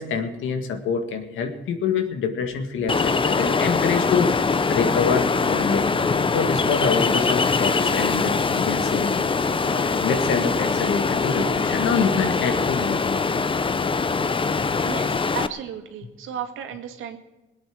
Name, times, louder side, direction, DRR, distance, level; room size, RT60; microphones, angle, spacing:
voice 1, 0.0-5.9 6.3-9.2 9.4-13.2, left 5 dB, 80° left, 6 dB, 2.0 m, -26 dB
Ocean, 2.9-15.5, left 4 dB, 25° left, 0.7 m, -22 dB
voice 2, 14.8-17.2, right 8 dB, 85° right, 5 dB, 2.0 m, -34 dB
20.5 x 8.7 x 6.2 m, 1.1 s
cardioid pair, 90°, 20 cm